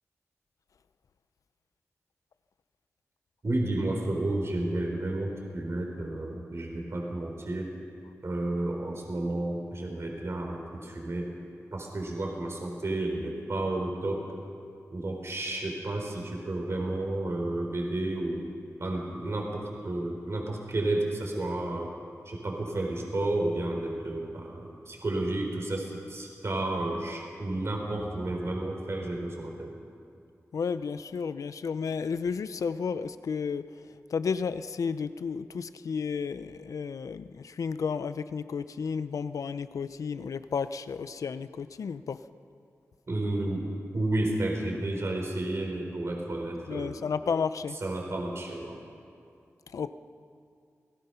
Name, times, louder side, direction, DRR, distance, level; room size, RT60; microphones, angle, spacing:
voice 1, 3.4-7.7 8.2-11.3 11.7-14.3 14.9-18.4 18.8-21.9 22.3-29.7 43.1-43.7 43.9-46.9 47.8-48.8, right 2 dB, 55° right, 1 dB, 4.1 m, -31 dB
voice 2, 30.5-42.3 46.7-47.8 49.7-49.9, left 5 dB, 85° left, 13 dB, 0.7 m, -32 dB
28.0 x 18.5 x 5.7 m, 2.4 s
cardioid pair, 60°, 6 cm